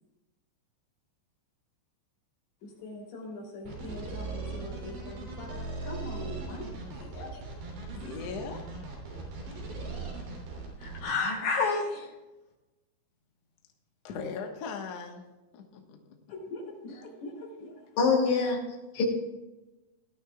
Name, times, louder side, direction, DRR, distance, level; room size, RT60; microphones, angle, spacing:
voice 1, 2.6-7.4 16.3-18.0, left 2 dB, 65° left, -3 dB, 4.9 m, -43 dB
sound 1, 3.6-11.0, right 3 dB, 75° right, 5.4 m, -39 dB
voice 2, 7.9-8.6 14.0-15.2 15.5-16.2, left 5 dB, 85° left, 2 dB, 1.4 m, -39 dB
voice 3, 10.8-12.0 18.0-18.6 18.9-19.0, left 4 dB, 50° left, -1 dB, 3.5 m, -26 dB
19.5 x 12.5 x 2.3 m, 1.0 s
omnidirectional pair, 5.1 m